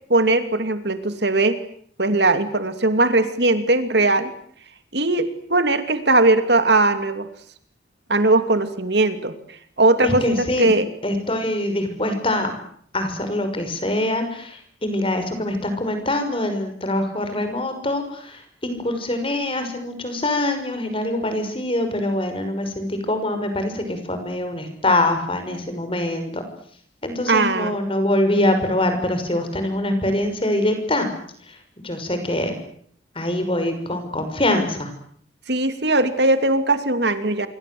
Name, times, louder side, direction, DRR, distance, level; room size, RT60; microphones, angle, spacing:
voice 1, 0.1-1.6 2.0-4.3 4.9-7.3 8.1-9.3 9.8-10.9 27.3-27.7 35.5-37.5, right 2 dB, 65° right, 9 dB, 2.8 m, -19 dB
voice 2, 10.0-10.7 11.0-12.6 12.9-26.4 27.0-31.1 31.8-32.5 33.2-34.9, left 1 dB, 30° left, 8 dB, 6.1 m, -24 dB
27.5 x 24.0 x 7.9 m, 0.63 s
head